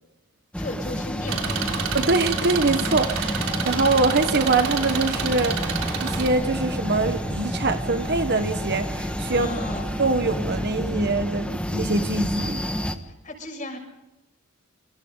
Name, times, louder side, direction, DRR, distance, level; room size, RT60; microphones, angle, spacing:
sound 1, 0.5-13.0, equal, 5° left, 1.5 m, -29 dB
voice 1, 0.6-1.9 9.3-9.9 13.0-13.8, left 1 dB, 35° left, 2 dB, 6.7 m, -36 dB
Engine, 1.3-6.3, right 6 dB, 80° right, 3.4 m, -29 dB
voice 2, 1.9-9.7 10.0-12.6, right 3 dB, 50° right, 8 dB, 1.4 m, -24 dB
sound 2, 3.4-10.4, right 1 dB, 20° right, 6.4 m, -39 dB
28.5 x 25.5 x 4.0 m, 0.95 s
head